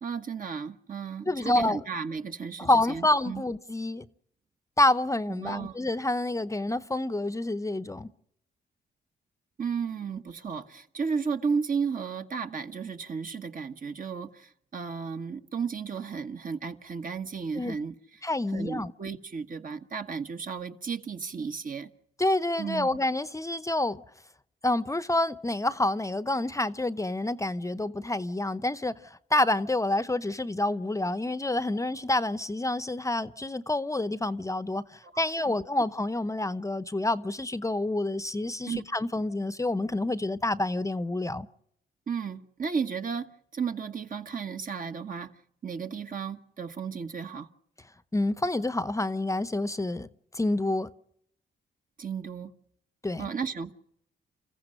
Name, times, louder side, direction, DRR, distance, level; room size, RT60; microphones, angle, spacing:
voice 1, 0.0-3.4 5.3-5.8 9.6-18.2 18.5-21.9 22.6-23.0 35.0-35.5 38.7-38.8 42.1-45.3 45.6-47.5 52.0-52.5 53.2-53.7, right 6 dB, 50° right, 1.4 m, -34 dB
voice 2, 1.3-1.8 2.6-4.1 4.8-8.1 17.6-17.7 18.2-18.9 22.2-24.0 24.6-28.9 29.3-34.8 35.2-41.5 48.1-50.1 50.3-50.9 53.0-53.3, left 2 dB, 15° left, 0.8 m, -28 dB
28.5 x 15.0 x 6.5 m
cardioid pair, 70°, 18 cm